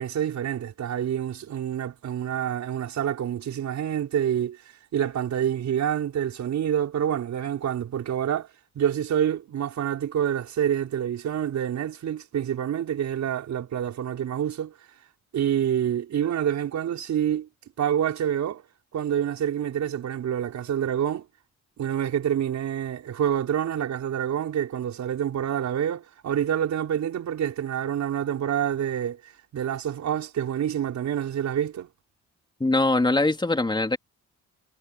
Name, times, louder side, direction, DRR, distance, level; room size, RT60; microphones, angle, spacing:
voice 1, 0.0-4.6 4.9-8.5 8.8-14.7 15.3-17.5 17.8-18.6 18.9-21.3 21.8-31.9, right 9 dB, 65° right, 5.1 m, -27 dB
voice 2, 32.6-34.0, left 2 dB, 15° left, 3.6 m, -22 dB
cardioid pair, 90°, 30 cm